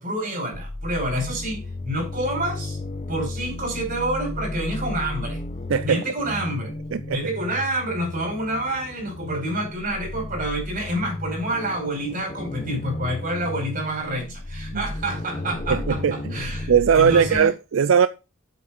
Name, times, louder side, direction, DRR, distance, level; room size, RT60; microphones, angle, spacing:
voice 1, 0.0-2.8 3.1-5.4 5.8-6.7 7.1-17.5, right 1 dB, 45° right, 4.7 m, -28 dB
sound 1, 0.5-17.4, left 1 dB, 35° left, 0.7 m, -34 dB
voice 2, 5.7-6.0 6.9-7.2 14.7-14.8 15.7-18.1, right 7 dB, 80° right, 0.4 m, -20 dB
8.3 x 5.8 x 5.3 m
head